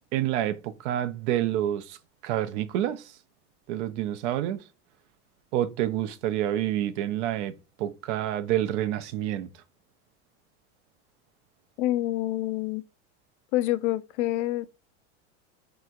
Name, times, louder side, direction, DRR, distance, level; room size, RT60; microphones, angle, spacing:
voice 1, 0.1-2.0 2.2-3.1 3.7-4.6 5.5-9.5, right 12 dB, 70° right, 0.6 m, -28 dB
voice 2, 11.8-12.8 13.5-14.7, left 15 dB, 75° left, 0.5 m, -27 dB
3.3 x 2.9 x 2.4 m
supercardioid pair, 105°, 36 cm